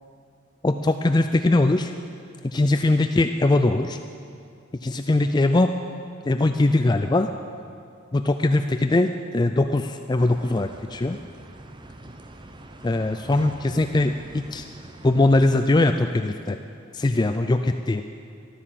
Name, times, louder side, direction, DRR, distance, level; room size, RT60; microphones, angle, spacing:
voice 1, 0.6-1.9 2.4-4.0 4.8-5.8 6.2-7.3 8.1-11.2 12.8-14.7 15.0-16.6 16.9-18.0, left 2 dB, 20° left, 7 dB, 0.3 m, -21 dB
sound 1, 10.2-15.7, right 1 dB, 25° right, 0.7 m, -44 dB
14.0 x 12.0 x 7.6 m, 2.5 s
head